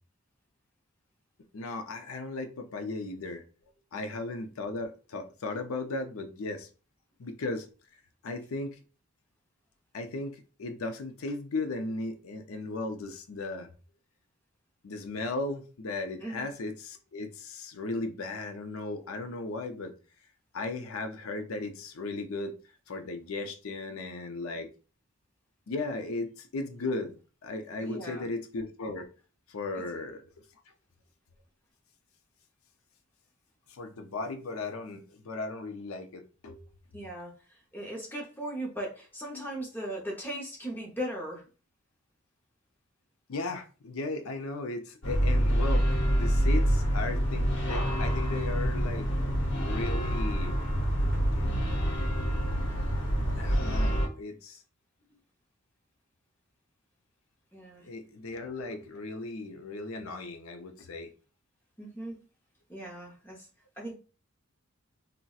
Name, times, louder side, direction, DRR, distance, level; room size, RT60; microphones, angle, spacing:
voice 1, 1.5-3.4 3.9-6.7 7.2-7.7 8.2-8.8 9.9-13.7 14.8-19.9 20.5-22.5 22.9-24.7 25.7-27.2 27.4-29.1 29.5-30.2 33.7-36.6 39.3-39.5 40.3-40.4 43.3-49.1 49.6-50.6 51.3-51.8 53.4-54.6 57.8-61.1, left 2 dB, 85° left, 0.5 m, -36 dB
voice 2, 27.8-28.3 29.7-29.8 36.9-37.3 37.7-41.4 57.5-57.8 61.8-62.2 62.7-63.5 63.8-63.9, right 1 dB, 10° left, 0.7 m, -38 dB
sound 1, 45.0-54.1, equal, 60° left, 0.9 m, -27 dB
4.0 x 2.1 x 2.3 m
head